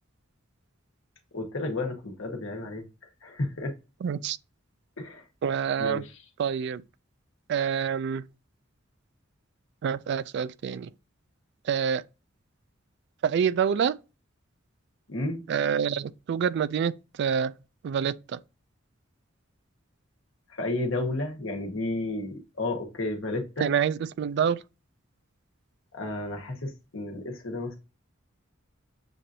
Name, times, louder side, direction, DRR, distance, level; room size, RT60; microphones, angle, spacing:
voice 1, 1.3-2.8 3.2-3.7 5.0-5.2 5.8-6.1 15.1-15.4 20.6-23.7 25.9-27.8, left 2 dB, 80° left, 1.2 m, -32 dB
voice 2, 4.0-4.4 5.4-6.0 6.4-6.8 7.5-8.2 9.8-10.9 11.7-12.0 13.2-14.0 15.5-16.9 17.2-17.5 17.8-18.4 23.6-24.6, right 7 dB, 60° right, 0.3 m, -26 dB
7.0 x 2.5 x 2.7 m
head